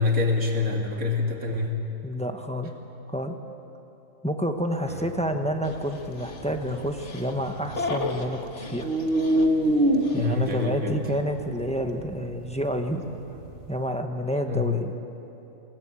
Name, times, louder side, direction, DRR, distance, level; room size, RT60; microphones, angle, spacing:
voice 1, 0.0-1.8 4.9-5.1 10.1-10.9 14.5-14.7, left 4 dB, 75° right, 1 dB, 2.7 m, -26 dB
voice 2, 2.0-2.7 3.1-3.3 4.2-8.9 10.1-13.0 13.7-14.9, equal, 5° left, 5 dB, 0.9 m, -29 dB
Dog, 5.6-10.7, left 3 dB, 60° left, 1.7 m, -36 dB
sound 1, 5.7-8.3 8.6-13.9, right 1 dB, 40° right, 1.4 m, -27 dB
20.0 x 18.5 x 8.9 m, 3.0 s
omnidirectional pair, 1.5 m